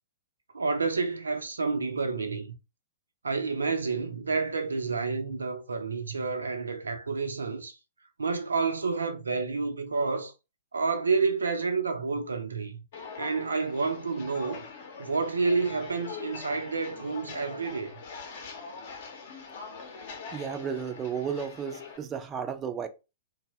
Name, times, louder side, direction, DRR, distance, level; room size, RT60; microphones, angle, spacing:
voice 1, 0.5-2.5 3.2-7.8 8.2-10.3 10.7-12.8 13.2-14.6 15.0-18.0, right 4 dB, 75° right, 0.5 m, -29 dB
Walk footsteps, 12.9-22.0, left 5 dB, 50° left, 0.7 m, -43 dB
voice 2, 20.3-22.9, right 7 dB, 20° right, 0.4 m, -33 dB
2.6 x 2.0 x 3.0 m
figure-of-eight pair, 110°, 0 cm